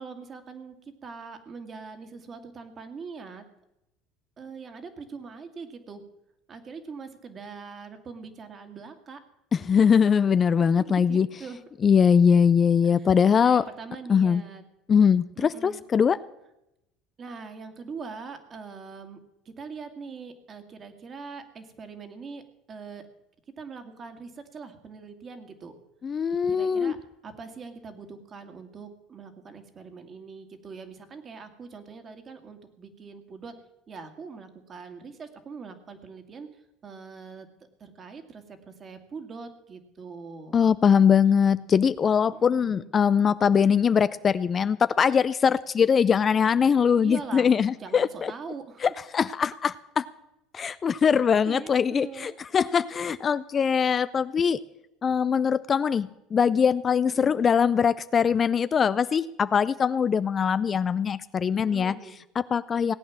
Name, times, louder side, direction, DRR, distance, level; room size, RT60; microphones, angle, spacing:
voice 1, 0.0-3.5 4.4-6.0 6.5-9.2 10.9-11.6 12.8-13.1 13.4-14.6 15.4-15.8 17.2-19.2 19.5-22.4 22.7-23.1 23.6-25.7 26.5-27.0 27.2-33.5 33.9-37.5 37.8-40.6 42.3-42.9 47.0-48.9 50.8-51.0 51.5-52.4 57.1-57.3 61.7-62.2 62.8-63.0, right 5 dB, 35° right, 8 dB, 2.2 m, -42 dB
voice 2, 9.5-11.3 11.8-13.6 14.1-14.4 14.9-16.2 26.0-26.9 40.5-48.3 48.8-50.1 50.5-54.6 55.0-62.0 62.4-62.9, left 7 dB, 35° left, 15 dB, 0.5 m, -22 dB
18.0 x 8.7 x 7.3 m, 0.87 s
supercardioid pair, 95°, 0 cm